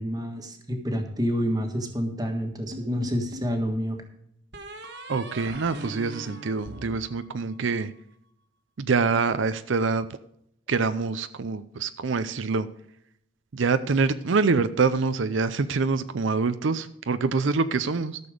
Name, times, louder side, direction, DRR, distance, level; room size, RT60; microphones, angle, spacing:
voice 1, 0.0-4.0, equal, 20° right, 4 dB, 1.5 m, -28 dB
sound 1, 2.7-3.6 4.5-7.9, right 1 dB, 60° right, 1.4 m, -41 dB
voice 2, 5.1-7.9 8.8-10.2 10.7-12.7 13.5-18.2, right 4 dB, 80° right, 12 dB, 0.6 m, -25 dB
13.5 x 6.9 x 5.0 m, 0.75 s
head